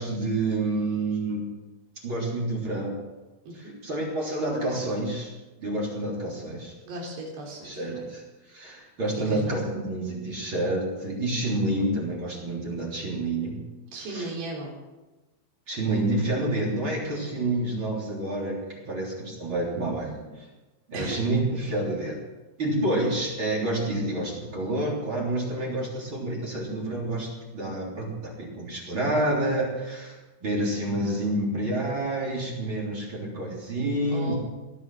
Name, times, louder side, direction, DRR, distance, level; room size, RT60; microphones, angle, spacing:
voice 1, 0.0-1.4 2.0-3.0 3.8-5.3 5.6-6.7 7.6-13.6 14.1-14.3 15.7-20.5 20.9-22.2 22.6-34.3, right 1 dB, 30° right, -3 dB, 3.8 m, -28 dB
voice 2, 3.5-3.8 6.8-8.1 9.1-9.6 13.9-14.8 20.9-21.2 34.1-34.4, right 2 dB, 75° right, -1 dB, 5.7 m, -36 dB
18.0 x 11.0 x 6.2 m, 1.1 s
omnidirectional pair, 4.8 m